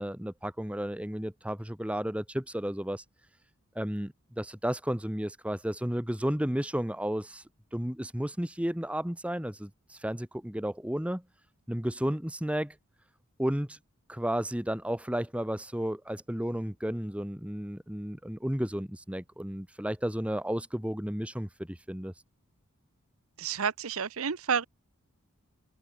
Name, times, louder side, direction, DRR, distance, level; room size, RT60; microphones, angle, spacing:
voice 1, 0.0-3.0 3.7-7.4 7.7-11.2 11.7-12.7 13.4-13.8 14.1-22.1, equal, 5° right, 1.2 m, -33 dB
voice 2, 23.4-24.6, right 6 dB, 80° right, 0.9 m, -30 dB
open air
head